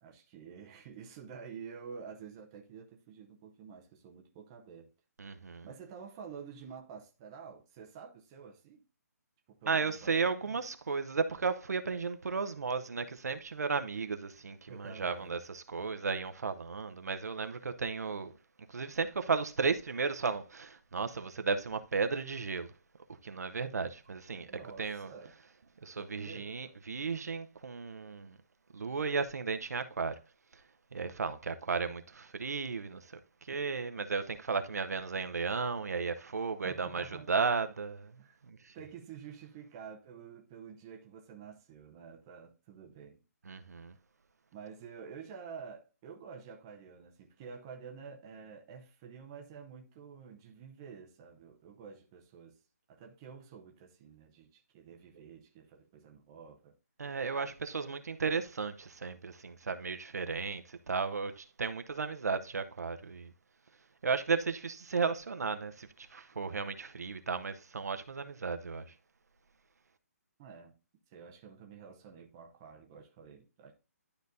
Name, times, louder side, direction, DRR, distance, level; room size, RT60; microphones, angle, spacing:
voice 1, 0.0-4.9 5.6-8.8 9.5-10.2 10.5-10.6 14.7-15.4 24.5-25.3 25.9-26.8 36.6-37.3 38.2-38.4 38.7-43.2 44.5-52.6 52.9-56.8 57.4-57.5 70.4-70.8 71.1-73.7, right 6 dB, 15° right, 0.6 m, -49 dB
voice 2, 5.2-5.7 9.7-18.3 18.7-22.7 23.2-24.5 24.8-25.1 25.8-28.4 28.7-30.2 30.9-38.2 38.4-38.7 43.5-43.9 57.0-63.3 64.0-68.8, right 5 dB, 75° right, 0.8 m, -34 dB
11.5 x 4.0 x 2.6 m
hypercardioid pair, 170°, 9 cm